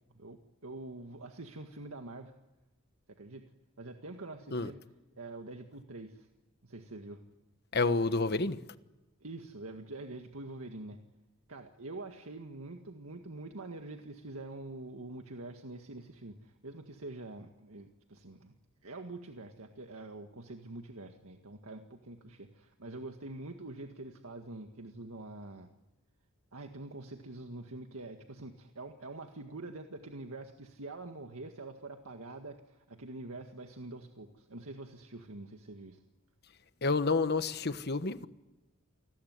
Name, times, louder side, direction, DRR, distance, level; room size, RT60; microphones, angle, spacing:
voice 1, 0.1-2.3 3.1-4.8 5.2-6.3 6.6-7.2 9.2-11.0 11.5-18.5 18.8-25.7 26.5-36.0, right 2 dB, 85° right, 1.9 m, -45 dB
voice 2, 7.7-8.6 36.8-38.3, left 3 dB, 50° left, 1.3 m, -29 dB
29.0 x 20.0 x 9.6 m
head